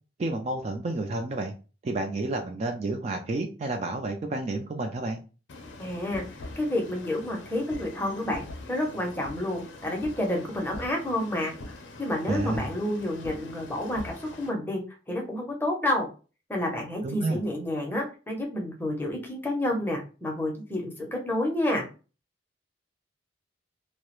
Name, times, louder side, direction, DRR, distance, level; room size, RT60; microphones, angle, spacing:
voice 1, 0.2-1.5 1.8-5.2 12.3-12.7 17.0-17.4, right 2 dB, 35° right, 4 dB, 0.3 m, -30 dB
sound 1, 5.5-14.5, left 2 dB, 75° left, 0.5 m, -43 dB
voice 2, 5.8-6.2 6.6-11.5 12.0-14.8 15.1-16.1 16.5-21.9, left 1 dB, 10° left, 0 dB, 0.6 m, -29 dB
2.3 x 2.0 x 2.9 m, 0.34 s
head